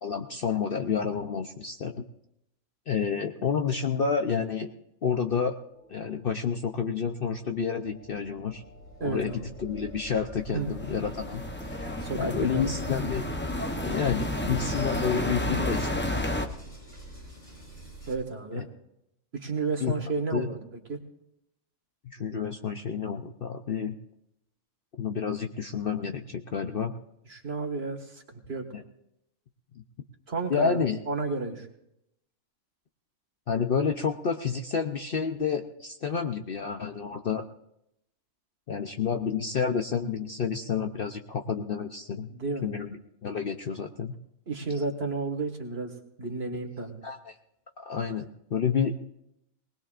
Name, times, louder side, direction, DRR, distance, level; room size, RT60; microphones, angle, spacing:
voice 1, 0.0-1.9 2.9-4.7 5.0-5.6 5.9-8.6 9.0-11.9 12.1-13.3 13.8-16.4 18.5-18.6 19.8-19.9 20.3-20.5 22.0-23.9 25.0-26.9 28.7-28.8 30.5-31.0 33.5-37.4 38.7-42.3 42.6-44.2 47.0-47.3 47.8-49.0, left 6 dB, 50° left, 5 dB, 0.7 m, -29 dB
sound 1, 5.7-18.2, right 1 dB, 35° left, 4.8 m, -45 dB
voice 2, 9.0-9.4 10.5-10.7 12.0-12.7 18.1-18.7 19.3-20.6 20.9-21.0 27.3-28.7 30.3-30.8 31.1-31.7 42.3-42.7 44.5-45.9 46.2-47.0, right 3 dB, 45° right, 3 dB, 1.9 m, -32 dB
sound 2, 10.5-16.5, left 1 dB, 10° left, 0.5 m, -31 dB
20.5 x 20.0 x 2.5 m, 0.81 s
omnidirectional pair, 1.4 m